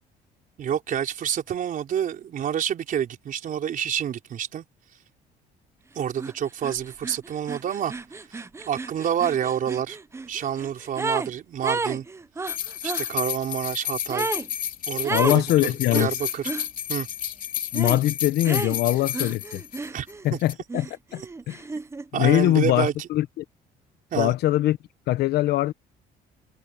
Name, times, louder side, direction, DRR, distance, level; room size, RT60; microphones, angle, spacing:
voice 1, 0.6-4.6 5.9-7.9 8.3-8.4 8.7-10.0 10.3-12.0 12.8-14.3 14.9-16.4 16.9-17.1 19.9-20.4 22.1-23.1 24.1-24.3, right 9 dB, 55° right, 4.4 m, -28 dB
sound 1, 6.2-6.3 6.6-11.3 11.6-13.1 14.1-14.5 15.0-15.4 15.9-16.7 17.7-18.0 18.4-20.3 20.7-22.1, right 3 dB, 15° right, 0.7 m, -32 dB
sound 2, 12.5-20.1 20.4-20.5, left 10 dB, 55° left, 3.1 m, -31 dB
voice 2, 15.1-16.1 17.7-19.6 20.2-21.2 21.5-21.6 22.1-23.4 24.1-24.8 25.1-25.7, left 15 dB, 75° left, 1.0 m, -22 dB
cardioid pair, 110°, 17 cm